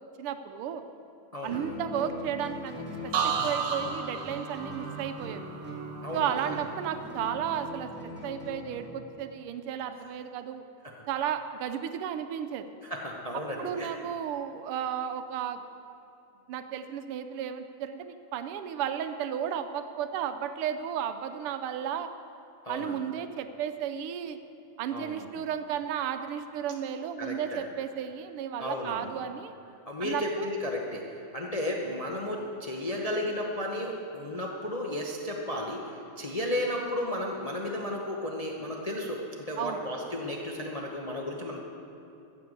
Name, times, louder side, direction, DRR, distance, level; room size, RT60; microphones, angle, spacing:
voice 1, 0.2-0.9 1.4-5.4 6.1-10.6 11.1-12.6 13.6-15.6 16.5-22.1 22.7-24.4 24.8-29.5 30.0-30.5 39.6-39.8, right 9 dB, 85° right, 9 dB, 1.6 m, -33 dB
voice 2, 1.3-1.6 6.0-6.6 12.8-13.9 22.6-23.0 24.9-25.2 27.2-27.6 28.6-29.1 29.9-41.6, left 1 dB, 65° left, -1 dB, 0.3 m, -33 dB
Guitar, 1.5-8.9, equal, 5° right, 1.5 m, -41 dB
sound 1, 3.1-6.9 7.3-7.8, right 6 dB, 65° right, 0.9 m, -34 dB
14.5 x 6.9 x 7.8 m, 2.8 s
omnidirectional pair, 2.4 m